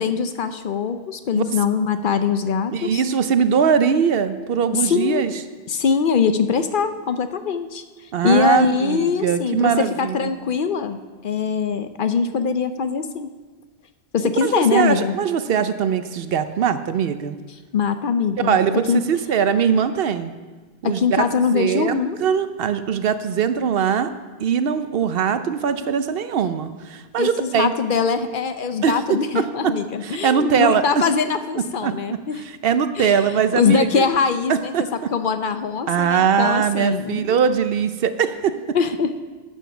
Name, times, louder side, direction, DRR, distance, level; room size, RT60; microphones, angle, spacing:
voice 1, 0.0-3.0 4.7-5.3 5.7-7.8 8.2-13.3 14.1-15.2 17.7-18.6 18.9-19.0 20.8-22.2 27.2-32.4 33.0-33.2 33.6-34.7 35.1-37.3 38.7-39.2, left 6 dB, 60° left, 10 dB, 0.7 m, -22 dB
voice 2, 2.7-5.3 8.1-10.3 14.4-17.4 18.4-20.3 20.8-21.3 21.5-24.1 24.4-27.7 28.8-31.0 31.6-34.1 34.5-35.1 35.9-38.8, right 7 dB, 65° right, 11 dB, 0.8 m, -21 dB
11.5 x 7.3 x 6.0 m, 1.3 s
omnidirectional pair, 1.1 m